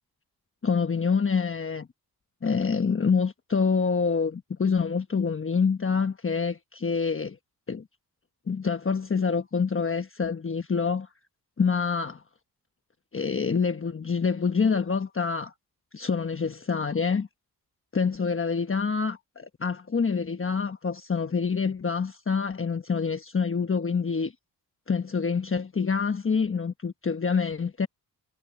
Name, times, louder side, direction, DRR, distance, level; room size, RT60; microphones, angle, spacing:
voice 1, 0.6-1.9 2.4-7.4 7.7-7.8 8.5-11.1 11.6-12.2 13.1-15.5 15.9-17.3 17.9-24.3 24.9-27.9, left 5 dB, 30° left, 1.2 m, -26 dB
cardioid pair, 60°, 40 cm